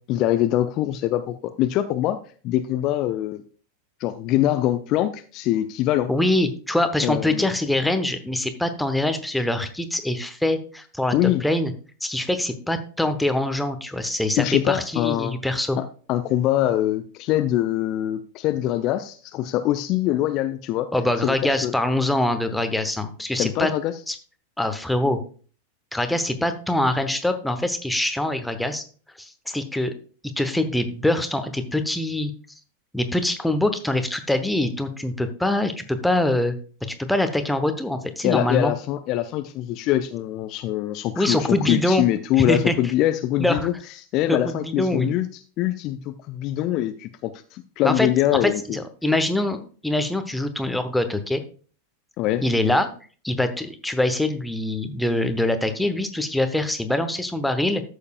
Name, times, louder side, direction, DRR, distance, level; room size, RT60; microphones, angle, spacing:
voice 1, 0.1-2.2 2.4-3.4 4.0-6.1 7.0-7.5 11.1-11.4 14.4-15.4 15.8-20.9 21.2-21.3 21.6-21.7 23.4-23.9 38.2-43.7 44.1-45.3 45.6-48.8 52.2-52.5, left 13 dB, 40° left, 10 dB, 0.5 m, -23 dB
voice 2, 6.1-11.7 12.0-15.8 20.9-23.7 24.1-24.2 24.6-25.2 25.9-28.8 29.2-29.9 30.4-32.3 32.9-36.5 37.0-38.7 41.2-42.1 42.5-42.7 43.4-43.7 44.3-45.1 47.8-48.1 48.4-51.4 52.4-52.9 53.2-57.8, left 1 dB, 5° left, 8 dB, 0.9 m, -24 dB
13.5 x 6.5 x 2.3 m, 0.40 s
figure-of-eight pair, 90°, 0 cm